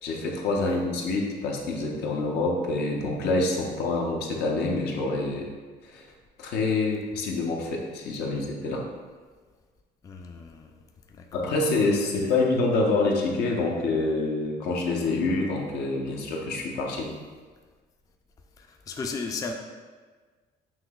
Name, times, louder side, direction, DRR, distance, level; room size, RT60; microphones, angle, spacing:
voice 1, 0.0-5.5 5.9-6.0 6.4-8.8 11.3-17.1, left 3 dB, 80° left, 0 dB, 0.7 m, -26 dB
voice 2, 10.0-10.8 11.1-11.5 18.6-19.5, left 4 dB, 20° left, 3 dB, 0.3 m, -36 dB
5.8 x 2.8 x 2.3 m, 1.4 s
cardioid pair, 110°, 17 cm